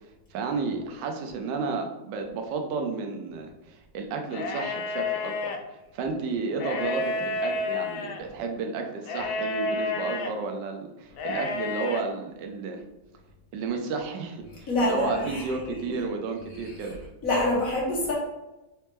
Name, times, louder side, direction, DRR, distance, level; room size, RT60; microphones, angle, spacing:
voice 1, 0.3-12.8 13.5-17.1, right 4 dB, 85° right, 4 dB, 1.3 m, -32 dB
sound 1, 4.3-5.6 6.5-8.2 9.1-10.3 11.1-12.0, left 3 dB, 70° left, 1.0 m, -30 dB
voice 2, 14.7-16.0 16.5-16.9 17.2-18.1, left 1 dB, 55° left, -4 dB, 1.5 m, -27 dB
4.1 x 3.2 x 3.3 m, 1.0 s
omnidirectional pair, 1.9 m